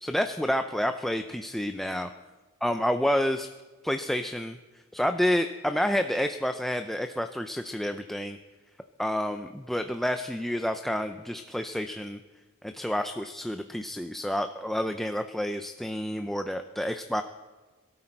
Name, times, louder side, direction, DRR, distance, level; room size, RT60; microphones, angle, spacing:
voice 1, 0.0-2.1 2.6-3.5 3.8-4.6 4.9-8.4 9.0-12.2 12.6-17.2, equal, ahead, 7 dB, 0.4 m, -29 dB
22.5 x 12.5 x 4.5 m, 1.3 s
head